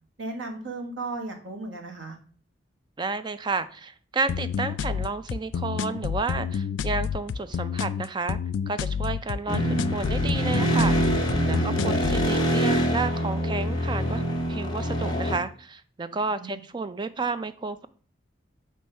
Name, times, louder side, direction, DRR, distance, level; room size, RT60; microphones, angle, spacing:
voice 1, 0.2-2.2 11.5-11.7 16.1-16.6, right 2 dB, 75° right, 4 dB, 1.4 m, -36 dB
voice 2, 3.0-8.4 8.7-11.0 11.4-14.2 14.5-17.9, right 4 dB, 25° right, 13 dB, 0.4 m, -31 dB
sound 1, 4.3-12.3, left 7 dB, 75° left, 0.3 m, -29 dB
sound 2, 9.5-15.4, right 1 dB, 20° left, 1.1 m, -25 dB
7.8 x 3.1 x 5.4 m, 0.43 s
head